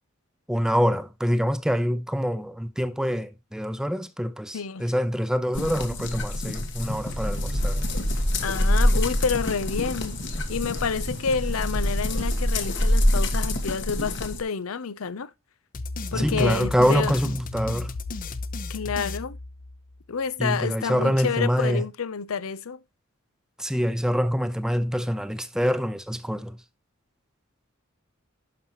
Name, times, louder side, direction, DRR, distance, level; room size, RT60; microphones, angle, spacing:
voice 1, 0.5-7.8 16.1-17.9 20.4-21.8 23.6-26.6, equal, 5° right, 0.6 m, -25 dB
voice 2, 4.5-4.9 8.4-10.2 10.5-15.3 16.1-17.2 18.7-19.4 20.1-22.8, left 5 dB, 85° left, 0.6 m, -29 dB
sound 1, 5.5-14.4, left 1 dB, 60° left, 1.6 m, -25 dB
sound 2, 6.8-12.5, right 1 dB, 45° right, 1.3 m, -40 dB
sound 3, 15.7-20.0, left 3 dB, 40° left, 0.7 m, -34 dB
11.0 x 5.6 x 3.0 m
head